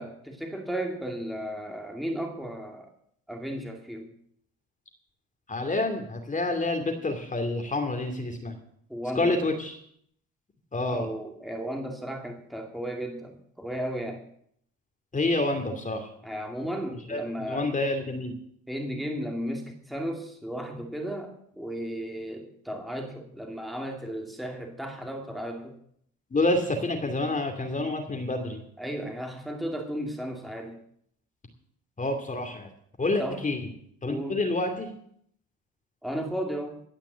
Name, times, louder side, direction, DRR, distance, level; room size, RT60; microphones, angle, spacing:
voice 1, 0.0-2.9 3.3-4.1 8.9-9.4 10.9-14.2 16.2-17.7 18.7-25.8 28.8-30.8 33.2-33.4 34.0-34.4 36.0-36.8, equal, ahead, 2 dB, 2.3 m, -34 dB
voice 2, 5.5-8.5 9.2-9.7 10.7-11.1 15.1-16.1 17.1-18.3 26.3-28.6 32.0-32.7 33.0-33.7 34.0-34.9, left 2 dB, 25° left, 4 dB, 2.5 m, -28 dB
17.5 x 5.9 x 8.1 m, 0.68 s
cardioid pair, 90°, 32 cm